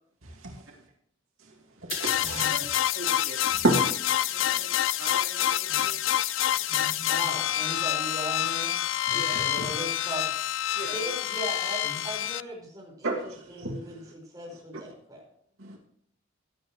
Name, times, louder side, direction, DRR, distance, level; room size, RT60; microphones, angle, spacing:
voice 1, 0.2-0.8 1.4-1.5 1.8-2.5 3.6-3.8 4.4-4.5 5.7-5.8 6.5-7.3 9.1-9.2 9.6-9.7 11.9-12.0 13.0-14.1 15.6-15.8, right 1 dB, 85° right, -1 dB, 2.4 m, -31 dB
sound 1, 1.9-12.4, left 12 dB, 70° left, 0.4 m, -27 dB
voice 2, 2.9-3.4 4.3-6.0 9.1-9.4 10.7-11.1, right 2 dB, 55° right, -3 dB, 3.2 m, -41 dB
voice 3, 7.1-8.8 9.1-10.2 10.9-15.2, right 1 dB, 15° right, -2 dB, 5.0 m, -38 dB
16.5 x 11.0 x 3.1 m, 0.69 s
head